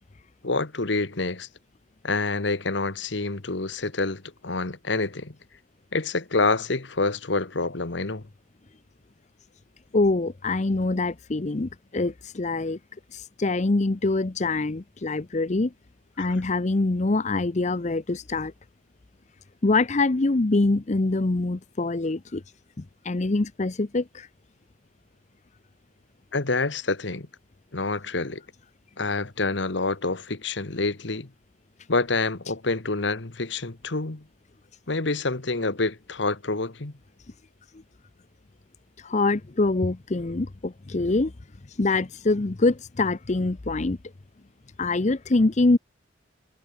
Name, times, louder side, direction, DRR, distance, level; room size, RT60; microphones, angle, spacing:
voice 1, 0.4-1.5 2.0-5.3 5.9-8.3 16.2-16.3 26.3-27.3 27.7-28.4 29.0-31.3 31.9-34.2 34.9-36.9, left 3 dB, 65° left, 1.4 m, -27 dB
voice 2, 9.9-12.8 13.1-15.7 16.2-18.5 19.6-22.4 23.0-24.3 39.0-41.3 41.7-44.0 44.8-45.8, left 2 dB, 35° left, 0.7 m, -24 dB
head